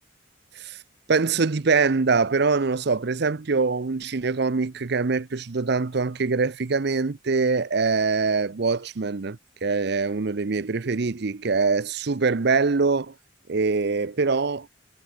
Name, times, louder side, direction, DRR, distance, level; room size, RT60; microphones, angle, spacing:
voice 1, 1.1-13.1 13.5-14.7, right 4 dB, 55° right, 0.7 m, -23 dB
head